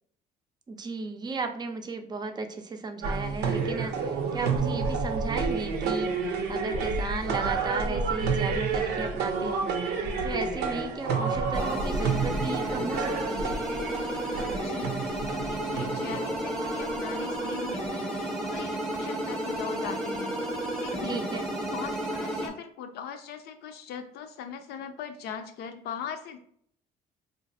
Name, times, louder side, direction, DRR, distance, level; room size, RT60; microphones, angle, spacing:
voice 1, 0.7-9.6 10.2-13.6 21.1-21.4, right 3 dB, 25° right, 6 dB, 0.4 m, -35 dB
sound 1, 3.0-17.5, right 4 dB, 85° right, 0.6 m, -30 dB
sound 2, 11.5-22.5, right 1 dB, 5° left, 0.7 m, -32 dB
voice 2, 14.5-15.0 15.3-20.4 20.8-21.2 21.7-26.4, left 7 dB, 75° left, 8 dB, 0.5 m, -40 dB
3.9 x 2.5 x 2.5 m, 0.63 s
cardioid pair, 110°, 17 cm